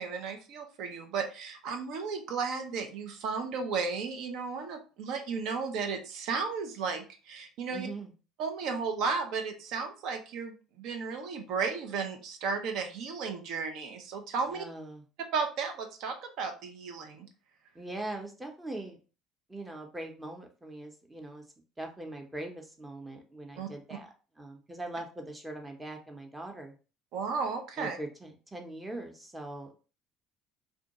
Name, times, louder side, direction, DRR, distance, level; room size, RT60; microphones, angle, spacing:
voice 1, 0.0-7.9 8.4-14.6 15.3-17.3 23.6-23.7 27.1-28.0, right 5 dB, 65° right, 6 dB, 0.5 m, -34 dB
voice 2, 7.7-8.1 14.5-15.0 17.7-19.0 19.5-21.4 21.8-26.8 27.8-29.9, right 2 dB, 15° right, 2 dB, 0.7 m, -41 dB
2.6 x 2.2 x 2.9 m, 0.35 s
hypercardioid pair, 65°, 0 cm